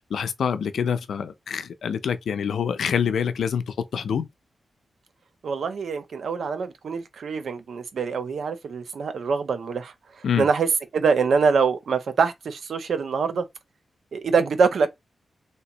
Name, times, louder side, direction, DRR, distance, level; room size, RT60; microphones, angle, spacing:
voice 1, 0.1-4.3 10.2-10.5, left 7 dB, 90° left, 0.4 m, -26 dB
voice 2, 5.4-9.9 10.4-10.7 10.9-13.4 14.1-14.9, right 5 dB, 80° right, 0.6 m, -24 dB
3.3 x 2.9 x 2.9 m
wide cardioid pair, 85°, 0 cm